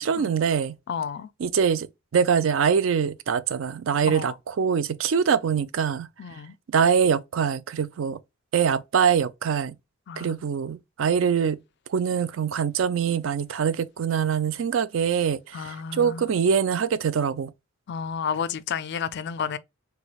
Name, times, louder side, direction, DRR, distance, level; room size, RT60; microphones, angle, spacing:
voice 1, 0.0-0.8 1.4-1.9 2.1-6.1 6.7-8.2 8.5-9.7 10.2-11.6 11.9-17.5, right 7 dB, 65° right, 0.4 m, -24 dB
voice 2, 0.9-1.3 4.1-4.3 6.2-6.5 10.1-10.4 15.5-16.3 17.9-19.6, left 6 dB, 50° left, 0.4 m, -31 dB
3.5 x 3.2 x 2.3 m
head